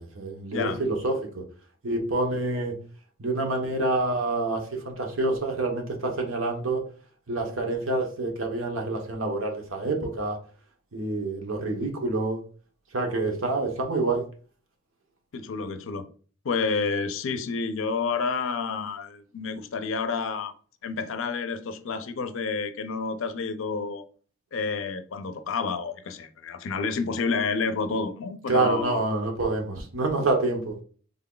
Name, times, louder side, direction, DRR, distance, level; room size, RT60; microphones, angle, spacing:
voice 1, 0.0-1.4 1.8-2.7 3.2-6.8 7.3-10.4 10.9-12.4 12.9-14.2 28.5-30.7, right 2 dB, 80° right, 0.9 m, -27 dB
voice 2, 15.3-16.1 16.4-20.5 20.8-24.0 24.5-29.0, left 4 dB, 70° left, 0.4 m, -29 dB
3.5 x 2.3 x 3.7 m
head